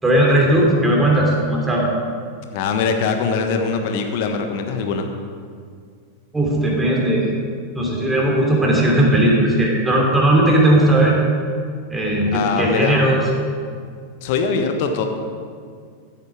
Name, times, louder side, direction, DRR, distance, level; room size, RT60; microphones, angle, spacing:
voice 1, 0.0-1.9 6.3-7.3 7.7-11.2 11.9-13.2, right 1 dB, 10° right, -2 dB, 2.9 m, -17 dB
voice 2, 2.5-5.1 12.3-13.3 14.2-15.0, left 5 dB, 50° left, 5 dB, 1.3 m, -22 dB
14.5 x 8.3 x 5.0 m, 2.1 s
figure-of-eight pair, 90°, 0 cm